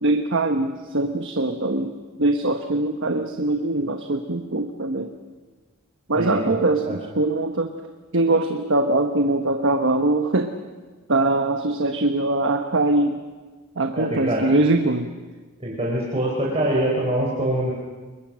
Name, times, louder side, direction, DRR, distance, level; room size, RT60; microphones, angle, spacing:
voice 1, 0.0-5.1 6.1-7.8 8.1-10.5 11.1-13.2 13.7-15.1, right 2 dB, 60° right, 5 dB, 1.3 m, -22 dB
voice 2, 6.2-6.5 6.8-6.9 13.9-14.4 15.6-17.7, right 1 dB, 30° right, -4 dB, 4.5 m, -24 dB
29.0 x 22.5 x 6.4 m, 1.3 s
head